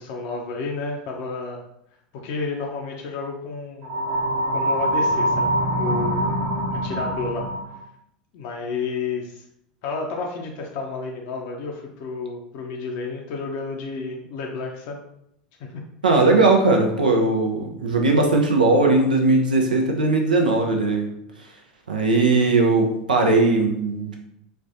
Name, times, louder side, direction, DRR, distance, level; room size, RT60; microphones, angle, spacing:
voice 1, 0.0-1.6 2.1-3.9 4.5-6.3 6.8-7.5 8.3-9.4 9.8-15.0 15.6-15.8 16.1-16.2, left 4 dB, 50° left, 0 dB, 0.5 m, -31 dB
sound 1, 3.8-7.8, right 1 dB, 35° right, 1.0 m, -24 dB
voice 2, 16.0-21.1 21.9-24.2, right 3 dB, 75° right, 2 dB, 0.6 m, -19 dB
4.2 x 2.2 x 2.5 m, 0.77 s
figure-of-eight pair, 80°, 5 cm